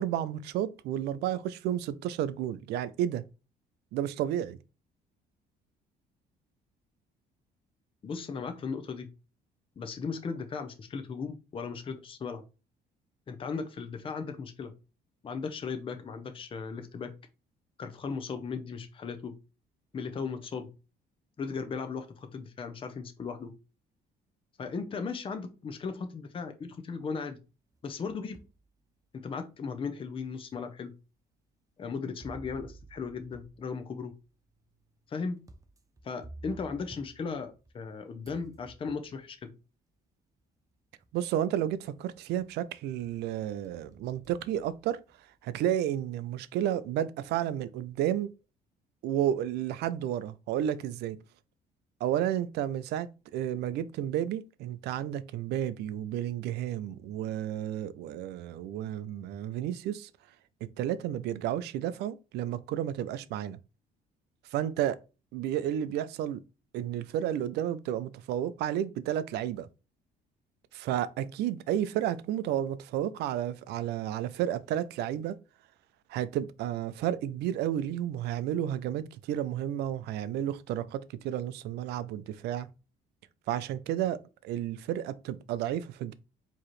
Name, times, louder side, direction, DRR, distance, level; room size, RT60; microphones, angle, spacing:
voice 1, 0.0-3.2 3.9-4.6 41.1-45.0 45.4-48.3 49.0-51.2 52.0-60.1 60.8-63.6 64.5-65.0 65.3-66.4 66.7-69.7 70.7-75.4 76.1-82.7 83.5-86.1, right 11 dB, 80° right, 0.5 m, -32 dB
voice 2, 8.0-9.1 9.8-12.4 13.3-14.7 15.2-17.1 17.8-19.3 19.9-20.7 21.4-23.5 24.6-27.4 27.8-28.4 29.1-30.9 31.8-34.1 35.1-35.4 36.0-39.5, left 5 dB, 30° left, 0.7 m, -37 dB
sound 1, 27.7-28.6 29.2-29.3 30.2-30.3 32.2-37.9 38.2-39.3 40.4-40.5 41.0-41.5 41.8-42.6 43.0-45.4, right 2 dB, 20° right, 0.7 m, -52 dB
4.7 x 3.0 x 3.1 m
cardioid pair, 110°, 17 cm